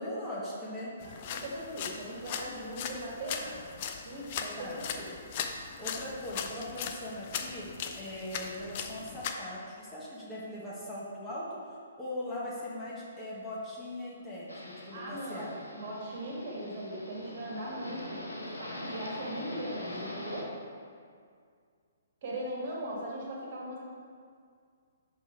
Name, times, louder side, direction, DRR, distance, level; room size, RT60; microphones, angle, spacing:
voice 1, 0.0-0.9 4.6-4.8 5.8-11.6 12.0-15.6 17.9-18.2, left 1 dB, 10° left, -8 dB, 1.3 m, -40 dB
sound 1, 1.0-9.3, left 7 dB, 35° left, 0.5 m, -39 dB
voice 2, 1.0-3.7 4.0-5.2 14.9-15.4 15.7-20.5 22.2-23.8, right 1 dB, 40° right, -3 dB, 1.8 m, -39 dB
sound 2, 14.5-20.4, left 1 dB, 80° left, 1.1 m, -43 dB
6.1 x 6.0 x 4.5 m, 2.2 s
figure-of-eight pair, 125°, 0 cm